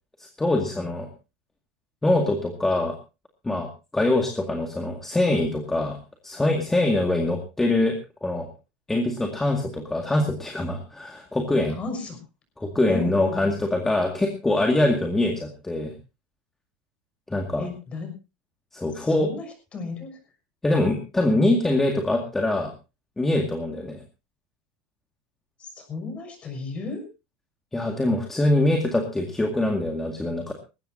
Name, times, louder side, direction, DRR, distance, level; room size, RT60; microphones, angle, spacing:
voice 1, 0.2-1.1 2.0-3.0 3.4-3.7 3.9-6.0 6.2-7.9 8.2-8.5 8.9-11.8 12.6-15.9 17.3-17.7 18.7-19.3 20.6-22.7 23.2-24.0 27.7-30.5, left 2 dB, 10° left, 3 dB, 2.1 m, -23 dB
voice 2, 11.8-12.2 12.9-13.5 17.6-18.2 18.9-20.2 25.6-27.0, left 3 dB, 25° left, 6 dB, 6.2 m, -34 dB
20.0 x 16.5 x 2.8 m, 0.29 s
supercardioid pair, 150°, 5 cm